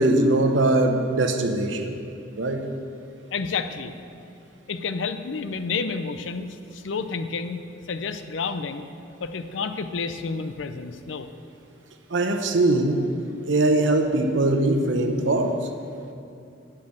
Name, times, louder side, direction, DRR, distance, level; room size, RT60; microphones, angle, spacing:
voice 1, 0.0-2.0 2.4-2.7 12.1-13.0 13.4-15.6, right 2 dB, 75° right, 5 dB, 0.8 m, -21 dB
voice 2, 3.3-3.9 4.7-7.6 7.9-8.9 9.2-11.3, left 5 dB, 85° left, 10 dB, 0.5 m, -30 dB
10.5 x 4.6 x 7.7 m, 2.5 s
head